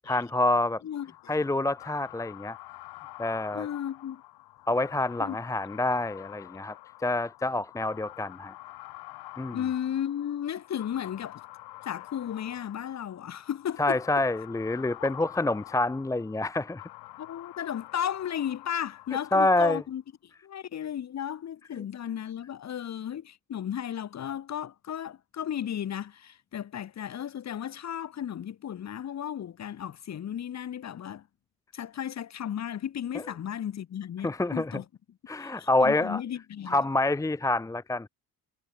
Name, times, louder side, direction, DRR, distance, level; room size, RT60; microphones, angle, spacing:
voice 1, 0.1-0.8 1.3-2.6 3.2-3.7 4.7-6.8 7.0-8.5 9.4-9.6 13.8-16.8 19.3-19.8 34.2-34.8 35.3-36.2 36.7-38.1, left 2 dB, 10° left, 1.0 m, -27 dB
voice 2, 0.8-1.3 3.5-4.2 5.2-5.4 9.5-11.4 11.8-14.0 15.0-15.1 17.2-20.0 20.4-31.2 31.7-34.8 35.4-36.8, left 9 dB, 45° left, 6.4 m, -34 dB
sound 1, 0.9-19.8, left 18 dB, 85° left, 6.7 m, -47 dB
cardioid pair, 150°, 37 cm